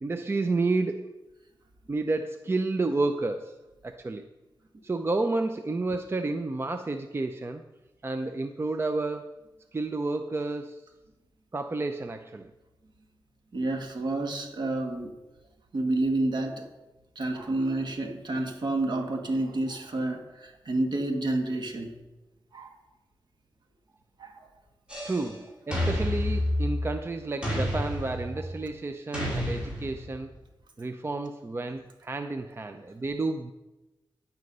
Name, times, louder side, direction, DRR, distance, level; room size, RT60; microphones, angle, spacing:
voice 1, 0.0-1.1 1.9-3.6 3.8-4.3 4.8-7.6 8.0-9.4 9.7-10.8 11.5-12.5 25.0-30.3 30.8-33.5, right 3 dB, 30° right, 7 dB, 0.5 m, -30 dB
voice 2, 13.5-15.1 15.7-16.7 17.1-21.9 22.5-22.7 24.2-24.5, right 2 dB, 60° right, 3 dB, 1.7 m, -29 dB
sound 1, 24.9-25.3 25.7-27.0 27.4-28.5 29.1-30.2, left 1 dB, 10° right, 5.0 m, -29 dB
10.5 x 9.4 x 5.4 m, 1.0 s
wide cardioid pair, 145°, 9 cm